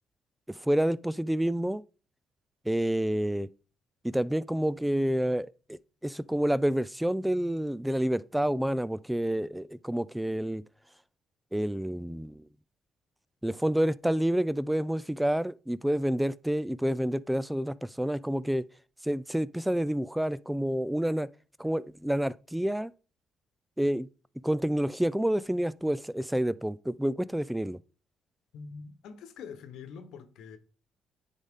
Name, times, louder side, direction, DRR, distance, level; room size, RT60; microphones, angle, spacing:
voice 1, 0.5-1.8 2.7-3.5 4.0-10.6 11.5-12.4 13.4-18.6 19.0-21.3 21.6-22.9 23.8-24.1 24.4-27.8, right 1 dB, 5° right, 0.4 m, -28 dB
voice 2, 28.5-30.6, left 5 dB, 75° left, 1.2 m, -44 dB
9.8 x 4.0 x 3.6 m
supercardioid pair, 80°, 0 cm